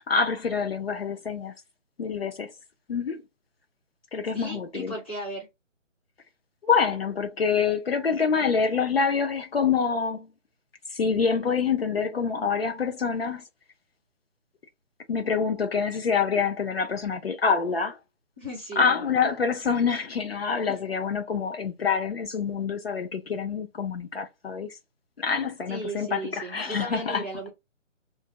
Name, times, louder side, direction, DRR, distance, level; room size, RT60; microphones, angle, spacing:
voice 1, 0.0-1.5 2.0-2.5 2.9-3.2 4.1-4.9 6.6-10.3 10.9-13.4 15.1-18.0 18.8-24.7 25.2-27.2, left 5 dB, 50° left, 0.6 m, -26 dB
voice 2, 4.3-5.5 18.4-19.3 20.7-20.8 25.7-27.5, right 1 dB, 10° left, 0.6 m, -36 dB
2.5 x 2.2 x 3.8 m
figure-of-eight pair, 155°, 38 cm